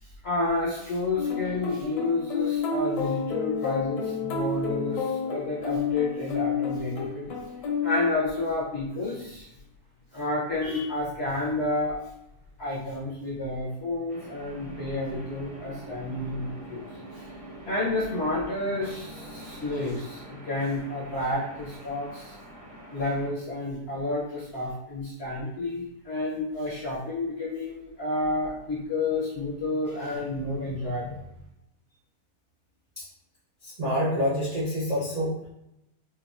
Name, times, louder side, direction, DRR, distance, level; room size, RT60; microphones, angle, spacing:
voice 1, 0.0-7.4 7.8-9.5 10.1-12.0 12.6-16.8 17.1-17.3 17.6-22.4 22.9-31.2, left 2 dB, 55° left, -6 dB, 0.7 m, -30 dB
sound 1, 1.2-8.6, left 5 dB, 80° left, 1.3 m, -30 dB
sound 2, 14.1-23.3, equal, 30° right, 0.6 m, -44 dB
voice 2, 33.6-35.5, equal, 75° right, -8 dB, 0.3 m, -27 dB
4.5 x 2.3 x 2.4 m, 0.84 s
omnidirectional pair, 1.9 m